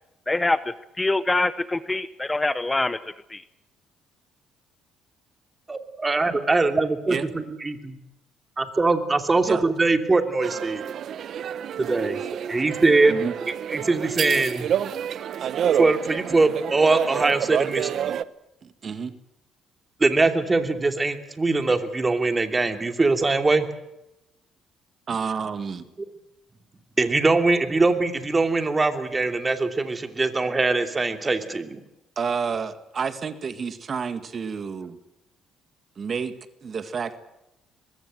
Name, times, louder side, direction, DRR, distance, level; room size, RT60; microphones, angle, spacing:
voice 1, 0.3-3.4, left 2 dB, 15° left, 14 dB, 0.9 m, -25 dB
voice 2, 5.7-8.0 8.6-10.9 11.8-12.2 12.5-13.1 13.7-14.7 15.7-18.1 20.0-23.7 27.0-31.8, right 3 dB, 20° right, 7 dB, 2.8 m, -22 dB
sound 1, 10.4-18.2, right 9 dB, 60° right, 0.9 m, -28 dB
voice 3, 18.6-19.2 25.1-25.8 32.2-35.0 36.0-36.4 36.6-37.2, right 6 dB, 40° right, 10 dB, 1.9 m, -29 dB
24.0 x 20.5 x 7.8 m, 0.88 s
cardioid pair, 100°, 0 cm